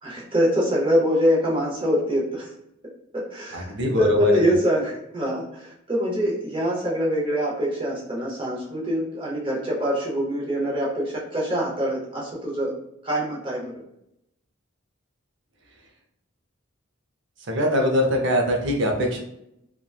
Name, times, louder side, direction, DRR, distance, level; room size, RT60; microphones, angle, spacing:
voice 1, 0.0-2.5 3.1-12.7 13.0-13.6, equal, 25° right, -5 dB, 0.7 m, -24 dB
voice 2, 3.5-4.5 17.5-19.2, left 1 dB, 60° right, 2 dB, 0.6 m, -22 dB
2.9 x 2.2 x 2.3 m, 0.80 s
head